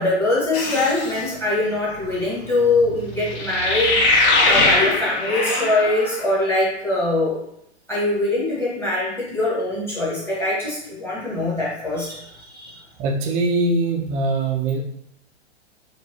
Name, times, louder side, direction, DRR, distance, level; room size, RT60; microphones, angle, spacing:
voice 1, 0.0-7.4 7.9-12.8, left 2 dB, 5° left, -7 dB, 1.3 m, -23 dB
sound 1, 0.5-1.2 3.3-6.2, left 2 dB, 30° left, 0.6 m, -20 dB
voice 2, 13.0-14.8, right 2 dB, 20° right, 1 dB, 0.4 m, -22 dB
4.5 x 2.4 x 2.7 m, 0.74 s
figure-of-eight pair, 100°, 34 cm